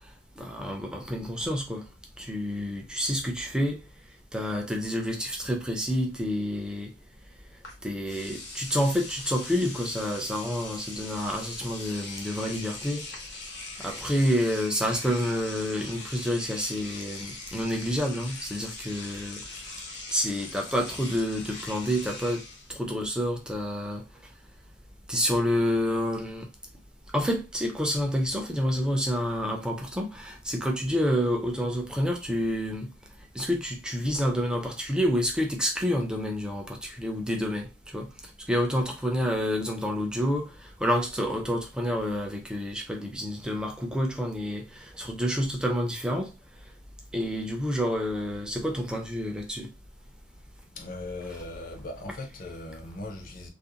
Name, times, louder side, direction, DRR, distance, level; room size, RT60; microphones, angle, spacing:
voice 1, 0.4-1.9 2.2-3.8 4.3-6.9 7.8-13.1 13.8-19.4 20.1-22.4 22.7-24.0 25.1-26.5 27.1-32.9 33.3-38.1 38.5-46.3 47.1-49.7, equal, 5° right, 0.4 m, -28 dB
Engine / Domestic sounds home sounds, 7.6-7.8 8.1-22.7, left 3 dB, 75° left, 0.8 m, -41 dB
voice 2, 50.7-53.5, left 2 dB, 50° left, 0.6 m, -39 dB
2.5 x 2.0 x 2.8 m
head